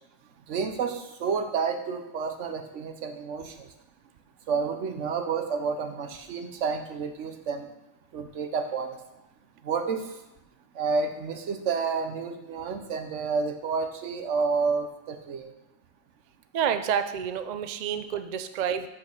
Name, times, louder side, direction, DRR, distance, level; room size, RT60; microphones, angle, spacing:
voice 1, 0.5-3.5 4.5-7.7 8.1-8.9 9.6-10.0 10.8-15.5, right 5 dB, 80° right, 6 dB, 1.2 m, -30 dB
voice 2, 16.5-18.9, right 8 dB, 55° right, 10 dB, 0.5 m, -29 dB
6.2 x 6.2 x 6.3 m, 0.92 s
omnidirectional pair, 1.2 m